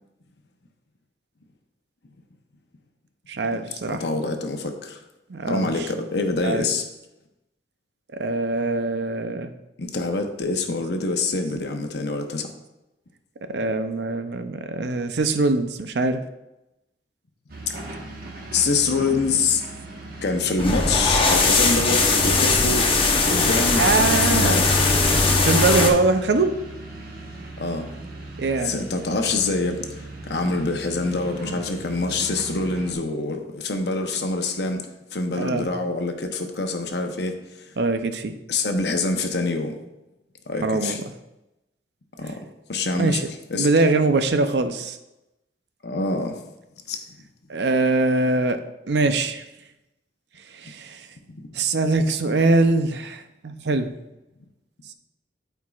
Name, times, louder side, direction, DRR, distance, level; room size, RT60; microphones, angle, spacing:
voice 1, 3.3-4.0 5.3-5.9 6.4-6.6 8.1-9.5 13.5-16.2 23.8-24.6 25.4-26.5 28.4-28.8 35.3-35.7 37.8-38.3 40.6-41.0 42.9-43.3 43.5-45.0 47.5-48.6 48.9-49.4 50.6-51.0 51.5-53.9, right 3 dB, 75° right, 9 dB, 0.6 m, -22 dB
voice 2, 3.9-5.0 5.5-6.8 9.8-12.5 18.5-19.7 20.2-22.9 23.3-23.9 24.2-25.1 27.6-27.9 28.6-34.8 35.1-37.7 38.5-39.8 40.5-41.0 42.2-42.4 42.7-43.2 43.5-43.7 45.8-46.4 46.9-47.0 51.3-51.5, left 3 dB, 70° left, 5 dB, 0.8 m, -25 dB
sound 1, 17.5-32.9, right 2 dB, 55° right, 1.3 m, -38 dB
sound 2, 20.6-25.9, left 3 dB, 30° left, 0.8 m, -19 dB
12.5 x 4.6 x 2.4 m, 0.95 s
head